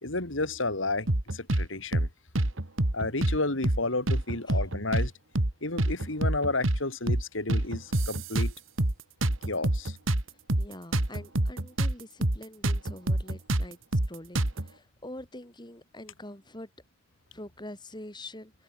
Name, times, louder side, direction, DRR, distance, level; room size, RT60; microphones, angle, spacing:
voice 1, 0.0-2.1 2.9-5.1 5.6-8.5 9.5-10.0, left 2 dB, 75° left, 3.5 m, -31 dB
sound 1, 1.1-1.7 1.9-2.1 2.3-3.4 3.6-3.8 4.1-5.1 5.3-5.5 5.8-6.8 7.1-7.2 7.5-8.9 9.2-11.9 12.2-12.4 12.6-14.7, right 1 dB, 80° right, 2.1 m, -26 dB
voice 2, 10.6-13.8 14.1-16.7 17.3-18.5, left 1 dB, 20° left, 3.9 m, -44 dB
head